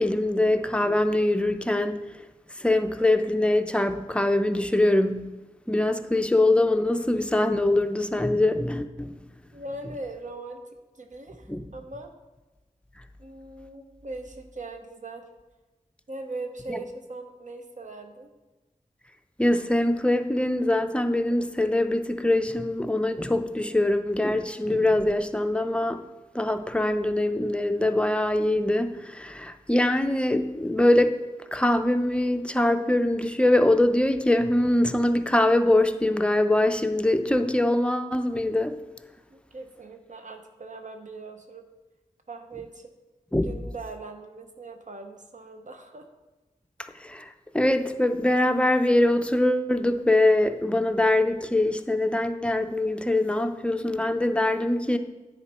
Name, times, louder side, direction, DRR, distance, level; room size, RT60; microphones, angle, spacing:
voice 1, 0.0-2.0 2.6-5.3 5.7-9.2 11.5-11.6 16.7-16.8 19.4-26.0 26.3-31.1 31.5-38.8 43.3-43.5 47.0-47.3 47.5-55.0, left 1 dB, 10° left, 0.5 m, -23 dB
voice 2, 9.5-10.6 11.0-12.1 13.2-15.2 16.1-18.3 39.3-41.6 42.3-42.9 43.4-46.1, right 2 dB, 60° right, 0.7 m, -40 dB
9.8 x 4.4 x 4.2 m
wide cardioid pair, 55°, 14 cm